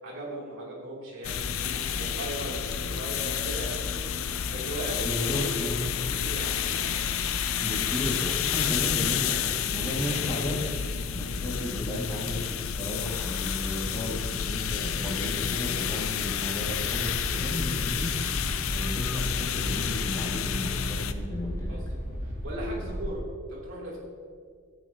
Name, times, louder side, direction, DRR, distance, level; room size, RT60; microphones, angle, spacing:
voice 1, 0.0-4.1 4.5-5.5 6.0-7.1 21.7-21.8 22.2-24.0, right 1 dB, 65° right, -4 dB, 3.0 m, -38 dB
sound 1, 1.2-21.1, left 8 dB, 75° left, 0.5 m, -30 dB
voice 2, 5.0-5.9 7.6-10.7 11.1-18.1 18.4-21.8, left 1 dB, 15° left, -5 dB, 2.0 m, -34 dB
sound 2, 16.6-23.1, equal, 10° right, 2.3 m, -35 dB
15.0 x 9.3 x 2.9 m, 2.1 s
head